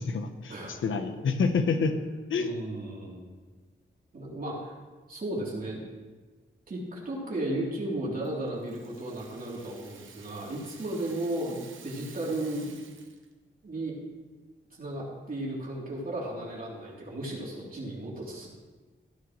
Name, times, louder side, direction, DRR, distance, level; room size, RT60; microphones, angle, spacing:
voice 1, 0.0-1.9 2.3-2.5, left 5 dB, 85° left, 8 dB, 0.9 m, -28 dB
voice 2, 2.4-3.3 4.1-4.7 5.1-5.8 6.7-12.7 13.6-14.0 14.8-18.5, right 1 dB, 45° right, -5 dB, 3.2 m, -34 dB
Rattle (instrument), 8.2-13.3, right 6 dB, 85° right, 1.0 m, -52 dB
15.0 x 9.6 x 3.1 m, 1.3 s
wide cardioid pair, 110°, 20 cm